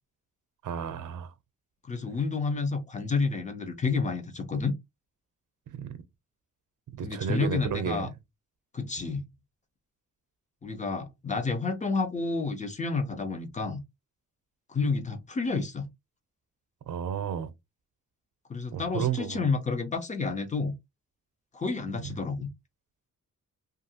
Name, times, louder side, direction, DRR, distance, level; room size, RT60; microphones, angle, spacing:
voice 1, 0.6-1.3 5.7-6.0 6.9-8.1 16.9-17.5 18.7-19.4 22.0-22.1, right 8 dB, 75° right, 0.6 m, -32 dB
voice 2, 1.8-4.8 7.0-8.1 8.7-9.2 10.6-13.8 14.7-15.9 18.5-20.8 21.5-22.5, left 4 dB, 25° left, 0.5 m, -30 dB
2.7 x 2.5 x 2.7 m
wide cardioid pair, 160°, 31 cm